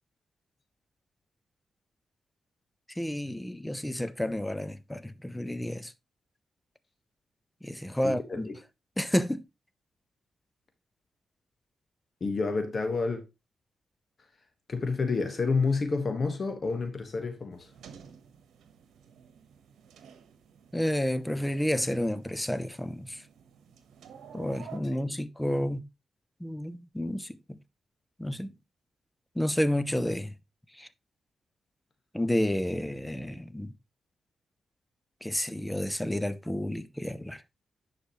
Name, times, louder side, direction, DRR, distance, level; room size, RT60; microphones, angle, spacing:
voice 1, 3.0-5.9 7.6-8.5 9.0-9.4 20.7-23.2 24.3-25.8 26.4-27.6 28.2-28.5 29.4-30.3 30.8-30.9 32.1-33.7 35.2-37.4, left 1 dB, 10° left, 0.7 m, -30 dB
voice 2, 8.0-8.5 12.2-13.2 14.7-17.7 25.1-25.2, left 4 dB, 50° left, 1.4 m, -29 dB
sound 1, 17.5-24.8, right 7 dB, 90° right, 1.1 m, -52 dB
10.0 x 4.9 x 3.1 m
cardioid pair, 70°, 0 cm